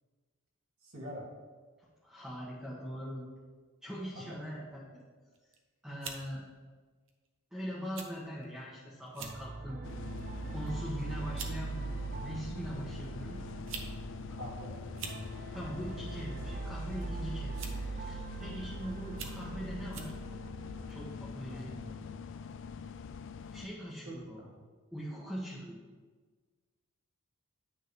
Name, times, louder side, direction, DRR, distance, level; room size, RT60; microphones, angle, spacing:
voice 1, 0.8-1.3 4.1-4.4 14.3-14.8 21.5-22.0 24.0-24.7, equal, 75° right, -4 dB, 2.6 m, -45 dB
voice 2, 2.0-3.3 3.8-5.0 5.8-6.4 7.5-9.8 10.5-11.9 12.2-13.4 15.3-17.5 17.9-20.1 20.9-21.8 23.5-24.4 24.9-25.8, equal, 5° right, -8 dB, 1.3 m, -41 dB
sound 1, 5.3-5.6 6.0-6.2 7.1-7.3 7.9-8.1 8.4-8.5 9.1-9.4 9.9-10.2 11.0-11.1 11.4-11.6 12.6-12.7 13.5-13.9 14.2-14.3 14.8-15.2 16.4-16.7 17.5-17.9 18.5-18.6 19.1-19.4 19.9-20.1, right 6 dB, 60° right, 0.9 m, -43 dB
sound 2, 9.2-20.9, right 4 dB, 40° right, 0.4 m, -42 dB
sound 3, 9.8-23.7, left 5 dB, 60° left, 0.4 m, -44 dB
9.5 x 3.7 x 6.2 m, 1.4 s
head